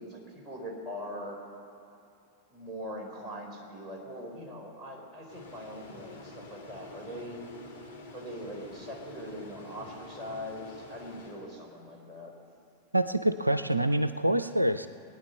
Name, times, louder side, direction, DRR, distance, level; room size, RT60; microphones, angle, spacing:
voice 1, 0.0-1.4 2.5-7.4 8.1-12.3, equal, 15° right, -1 dB, 3.9 m, -41 dB
sound 1, 5.3-12.0, left 2 dB, 80° left, 2.1 m, -48 dB
voice 2, 12.9-14.9, right 1 dB, 85° right, 12 dB, 0.4 m, -26 dB
20.5 x 9.7 x 6.9 m, 2.7 s
figure-of-eight pair, 90°, 0 cm